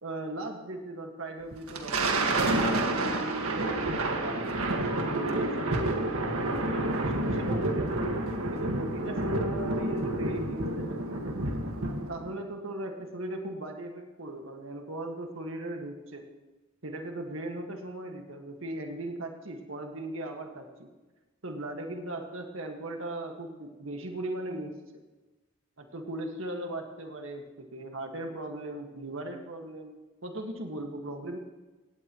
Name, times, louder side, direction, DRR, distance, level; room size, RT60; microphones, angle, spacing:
voice 1, 0.0-4.6 5.0-6.0 6.2-8.1 8.5-11.4 12.1-16.2 16.8-20.9 21.4-25.0 25.8-29.9 30.2-31.4, right 1 dB, 70° right, 3 dB, 1.8 m, -38 dB
Thunder, 1.5-12.3, right 2 dB, 90° right, 1.8 m, -29 dB
17.5 x 17.5 x 3.1 m, 1.2 s
head